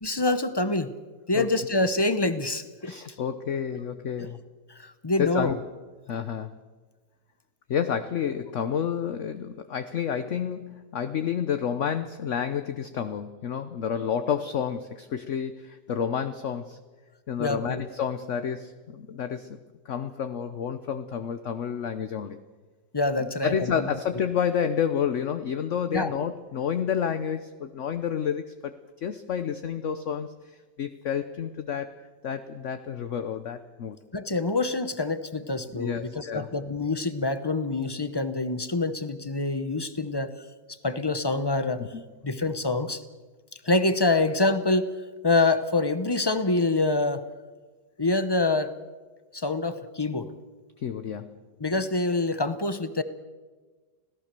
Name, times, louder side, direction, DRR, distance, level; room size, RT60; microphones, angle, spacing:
voice 1, 0.0-0.9 1.3-2.9 3.7-3.8 4.2-4.3 4.7-5.6 17.4-17.8 22.9-23.9 25.9-26.1 34.1-40.3 40.7-41.9 42.2-43.0 43.6-44.9 45.2-47.2 48.0-48.8 49.3-50.3 51.6-53.0, left 2 dB, 25° left, 12 dB, 0.5 m, -26 dB
voice 2, 2.8-4.4 5.2-5.6 6.1-6.6 7.7-16.8 17.3-19.6 19.9-22.4 23.4-28.7 29.0-30.3 30.8-31.9 32.2-34.0 35.7-36.5 41.9-42.0 50.8-51.4, left 8 dB, 55° left, 10 dB, 1.0 m, -30 dB
26.5 x 17.0 x 6.8 m, 1.4 s
omnidirectional pair, 1.8 m